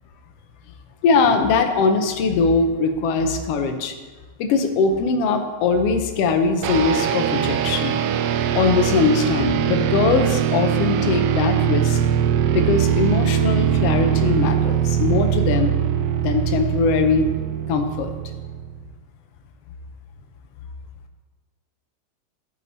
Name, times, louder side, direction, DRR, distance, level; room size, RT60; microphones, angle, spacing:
voice 1, 1.0-3.9 4.4-8.0 8.5-12.0 12.5-15.7 16.2-17.3 17.7-18.1, left 4 dB, 65° left, 6 dB, 1.7 m, -21 dB
sound 1, 6.6-18.8, right 9 dB, 80° right, 1.4 m, -21 dB
14.5 x 5.3 x 4.1 m, 1.3 s
omnidirectional pair, 3.3 m